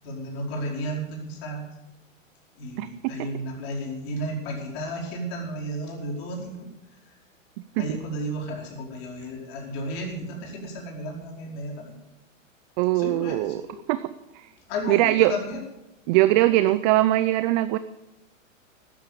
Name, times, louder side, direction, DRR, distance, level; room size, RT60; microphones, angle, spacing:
voice 1, 0.0-1.7 2.6-6.7 7.8-11.9 12.9-13.8 14.7-15.6, equal, 50° left, 0 dB, 4.9 m, -33 dB
voice 2, 12.8-13.6 13.9-14.1 14.9-15.3 16.1-17.8, right 16 dB, 35° right, 13 dB, 0.6 m, -21 dB
12.5 x 10.5 x 8.3 m, 0.94 s
hypercardioid pair, 125°, 40 cm